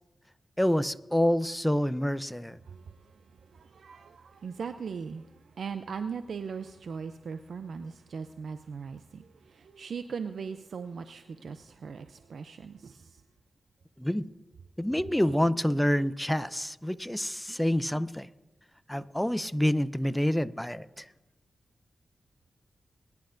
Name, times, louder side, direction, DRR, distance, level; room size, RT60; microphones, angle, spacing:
voice 1, 0.6-2.6 14.0-14.2 14.8-18.3 18.9-21.0, equal, 5° left, 15 dB, 0.6 m, -27 dB
voice 2, 2.7-3.2 3.5-13.2, right 6 dB, 80° right, 9 dB, 0.4 m, -39 dB
22.0 x 10.5 x 2.6 m, 1.1 s
cardioid pair, 45°, 0 cm